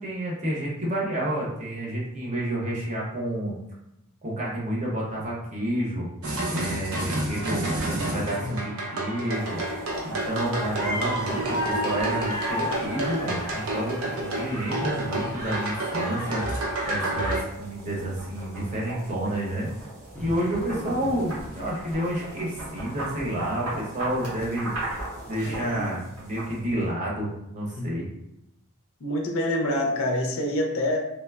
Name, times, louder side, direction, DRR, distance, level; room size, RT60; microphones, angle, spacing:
voice 1, 0.0-3.5 4.2-6.1 6.5-9.6 10.0-16.4 16.9-19.7 20.2-24.7 25.3-28.1, right 1 dB, 30° right, -5 dB, 0.7 m, -30 dB
sound 1, 6.2-17.4, right 1 dB, 70° right, 0.6 m, -29 dB
sound 2, 9.3-26.9, right 1 dB, 90° right, 1.0 m, -39 dB
sound 3, 20.1-25.8, equal, 5° left, 0.6 m, -42 dB
voice 2, 25.4-25.9 27.8-27.9 29.0-31.0, left 1 dB, 65° left, 1 dB, 0.5 m, -27 dB
3.1 x 2.0 x 2.2 m, 0.88 s
head